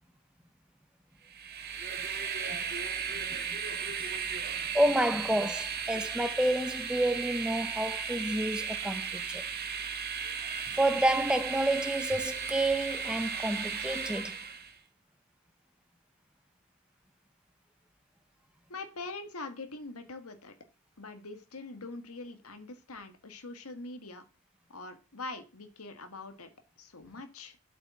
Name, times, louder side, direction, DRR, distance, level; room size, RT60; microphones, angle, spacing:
Train, 1.3-14.7, right 6 dB, 45° right, 1.4 m, -35 dB
voice 1, 4.7-9.4 10.7-14.4, right 1 dB, 5° right, 0.5 m, -29 dB
voice 2, 18.7-20.5 21.0-24.2 24.7-26.5 26.8-27.6, left 3 dB, 85° left, 1.7 m, -43 dB
8.4 x 6.5 x 7.4 m
head